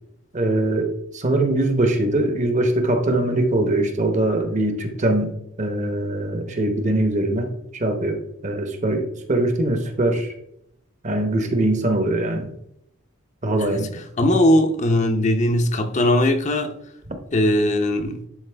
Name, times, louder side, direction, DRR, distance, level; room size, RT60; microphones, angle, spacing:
voice 1, 0.3-5.3 5.6-10.3 11.0-12.5 13.4-13.9, right 1 dB, 35° right, 0.9 m, -22 dB
voice 2, 13.6-16.7 17.3-18.2, left 1 dB, 35° left, 0.7 m, -20 dB
10.5 x 4.2 x 3.3 m
head